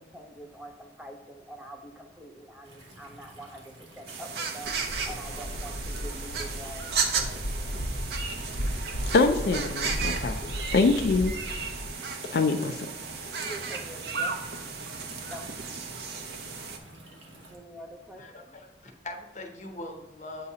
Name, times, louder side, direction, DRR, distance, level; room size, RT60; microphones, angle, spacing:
voice 1, 0.0-4.8 5.0-7.7 13.4-14.4 15.3-15.6 17.0-17.2 17.5-18.6, right 1 dB, 5° right, 3 dB, 0.5 m, -45 dB
sound 1, 2.6-17.6, right 1 dB, 90° right, 1.2 m, -50 dB
sound 2, 4.1-16.8, right 5 dB, 60° right, 0.6 m, -34 dB
Waves surf, 4.6-11.9, equal, 75° left, 0.8 m, -35 dB
voice 2, 9.1-11.3 12.3-12.9, left 3 dB, 55° left, 5 dB, 0.3 m, -24 dB
voice 3, 18.2-20.5, left 2 dB, 40° left, 4 dB, 0.7 m, -41 dB
7.7 x 2.8 x 4.8 m, 1.1 s
head